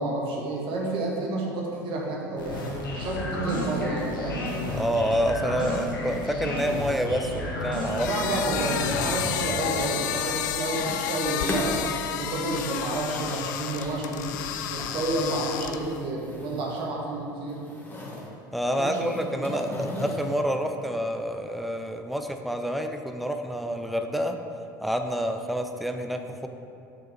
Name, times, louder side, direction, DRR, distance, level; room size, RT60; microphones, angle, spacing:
voice 1, 0.0-2.6 2.9-4.4 8.0-11.8 12.2-14.3 14.7-17.7 18.8-19.0 19.5-19.6, right 2 dB, 55° right, -2 dB, 1.5 m, -30 dB
sound 1, 2.4-9.5, left 2 dB, 90° left, 1.4 m, -32 dB
voice 2, 4.7-8.7 18.5-24.4 24.8-26.5, equal, ahead, 6 dB, 0.6 m, -28 dB
sound 2, 7.9-16.1, left 10 dB, 70° left, 0.4 m, -31 dB
sound 3, 9.8-10.3 10.6-11.1 11.3-15.6 15.9-16.9 17.2-18.3 18.7-20.4, equal, 15° left, 1.8 m, -37 dB
6.9 x 6.2 x 4.3 m, 2.7 s
hypercardioid pair, 70°, 11 cm